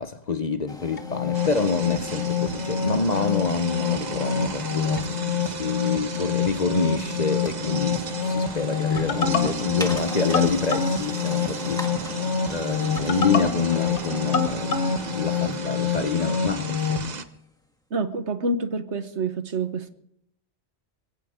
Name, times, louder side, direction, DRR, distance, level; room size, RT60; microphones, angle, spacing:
voice 1, 0.0-5.1 5.5-11.9 12.5-14.9 15.1-17.1, left 4 dB, 40° left, 0.8 m, -27 dB
sound 1, 0.7-17.5, left 1 dB, 5° left, 1.6 m, -42 dB
sound 2, 1.0-17.1, left 7 dB, 70° left, 1.6 m, -27 dB
sound 3, 1.3-17.2, right 5 dB, 40° right, 1.0 m, -35 dB
voice 2, 17.9-19.9, right 3 dB, 75° right, 1.5 m, -27 dB
22.5 x 17.0 x 3.7 m
omnidirectional pair, 1.2 m